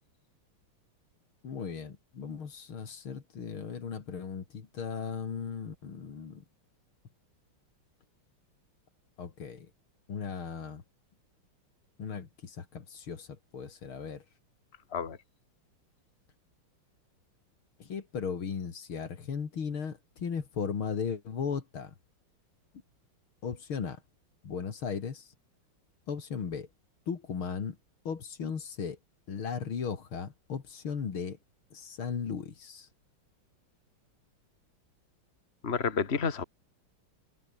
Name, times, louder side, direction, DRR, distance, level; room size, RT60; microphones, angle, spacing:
voice 1, 1.4-6.4 9.2-9.7 10.1-10.8 12.0-14.2 17.8-21.9 23.4-24.0 24.4-25.3 26.1-26.7 27.1-27.8 28.0-29.0 29.3-31.4 31.7-32.9, left 6 dB, 75° left, 3.3 m, -36 dB
voice 2, 35.6-36.4, left 5 dB, 30° left, 2.2 m, -30 dB
omnidirectional pair, 2.3 m